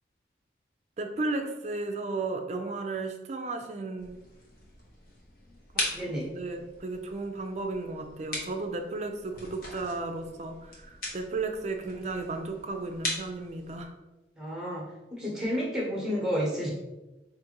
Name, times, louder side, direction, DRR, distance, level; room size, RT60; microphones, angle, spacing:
voice 1, 1.0-4.1 6.0-13.9, right 3 dB, 40° right, 5 dB, 0.4 m, -34 dB
sound 1, 4.0-13.8, left 1 dB, 50° left, 1.0 m, -40 dB
voice 2, 5.8-6.3 14.4-16.7, equal, 5° right, -4 dB, 1.0 m, -31 dB
4.9 x 2.6 x 2.9 m, 1.0 s
head